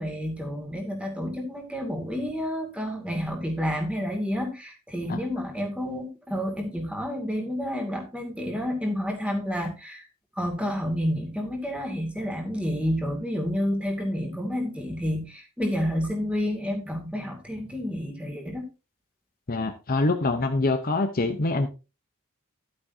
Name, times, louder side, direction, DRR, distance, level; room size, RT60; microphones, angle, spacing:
voice 1, 0.0-10.1 10.4-18.7, equal, 5° right, 2 dB, 2.4 m, -30 dB
voice 2, 19.5-21.7, left 2 dB, 40° left, 7 dB, 0.9 m, -25 dB
12.0 x 8.6 x 2.7 m, 0.28 s
head